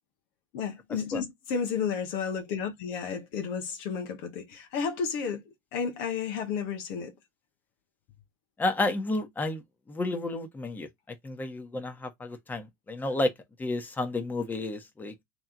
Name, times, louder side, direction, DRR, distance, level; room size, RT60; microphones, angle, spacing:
voice 1, 0.5-5.4 5.7-7.1, left 6 dB, 55° left, 1.0 m, -32 dB
voice 2, 8.6-9.6 9.9-13.3 13.6-15.2, left 2 dB, 15° left, 1.2 m, -31 dB
3.4 x 3.1 x 3.8 m
figure-of-eight pair, 75°, 11 cm